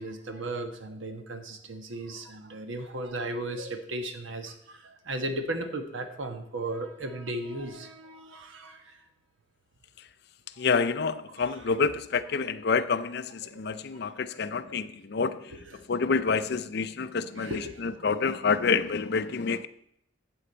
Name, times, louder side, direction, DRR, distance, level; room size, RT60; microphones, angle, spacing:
voice 1, 0.0-9.0 10.6-10.7 13.4-13.7 14.1-14.4 14.6-14.8 15.5-15.8 17.3-17.9, right 1 dB, 80° right, 6 dB, 1.2 m, -36 dB
voice 2, 10.6-15.6 15.9-19.7, left 5 dB, 55° left, 13 dB, 0.5 m, -28 dB
13.5 x 7.8 x 4.4 m, 0.74 s
head